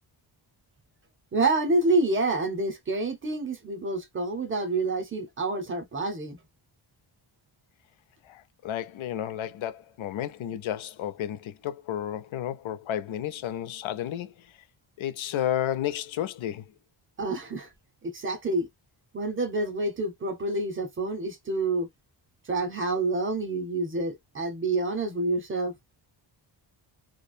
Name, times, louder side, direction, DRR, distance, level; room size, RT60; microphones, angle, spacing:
voice 1, 1.3-6.4 17.2-17.7 18.0-18.7 19.1-21.9 22.5-25.7, right 2 dB, 25° right, 0.7 m, -28 dB
voice 2, 8.2-14.6 15.0-16.7, left 11 dB, 70° left, 0.6 m, -32 dB
2.4 x 2.1 x 2.4 m
wide cardioid pair, 165°, 50 cm